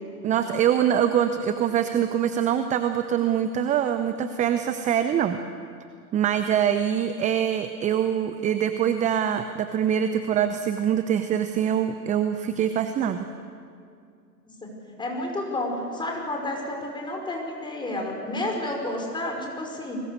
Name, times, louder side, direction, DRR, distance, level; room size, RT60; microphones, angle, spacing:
voice 1, 0.2-5.4 6.1-13.2, right 9 dB, 15° right, 9 dB, 0.7 m, -24 dB
voice 2, 15.0-20.0, left 1 dB, 10° left, 1 dB, 5.4 m, -30 dB
30.0 x 21.5 x 6.6 m, 2.3 s
figure-of-eight pair, 110°, 49 cm